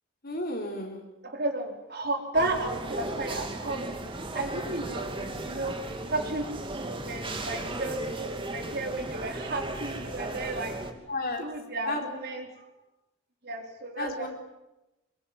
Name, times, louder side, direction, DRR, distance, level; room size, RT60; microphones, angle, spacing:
voice 1, 0.2-1.0 11.1-11.5 11.9-12.0 14.0-14.3, left 2 dB, 45° left, 2 dB, 4.0 m, -32 dB
voice 2, 1.2-10.7 11.4-12.5 13.4-14.3, right 2 dB, 50° right, 3 dB, 4.5 m, -33 dB
sound 1, 2.3-10.9, right 2 dB, 25° right, 2.9 m, -36 dB
28.0 x 22.0 x 9.5 m, 0.97 s
head